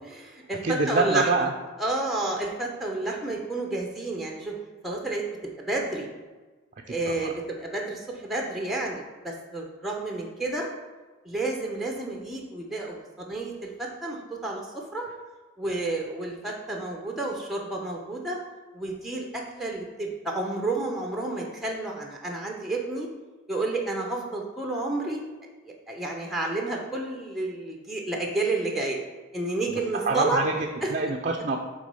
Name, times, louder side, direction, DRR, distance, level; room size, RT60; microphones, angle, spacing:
voice 1, 0.1-1.5 1.8-4.5 4.8-6.1 6.9-10.7 11.2-14.6 14.9-15.0 15.6-18.4 18.7-23.1 23.5-25.2 25.6-29.0 29.3-30.4 30.8-30.9, right 2 dB, ahead, 0 dB, 0.7 m, -30 dB
voice 2, 0.6-1.5 6.9-7.3 29.7-31.6, right 3 dB, 40° right, 2 dB, 0.4 m, -26 dB
6.2 x 3.7 x 5.5 m, 1.3 s
head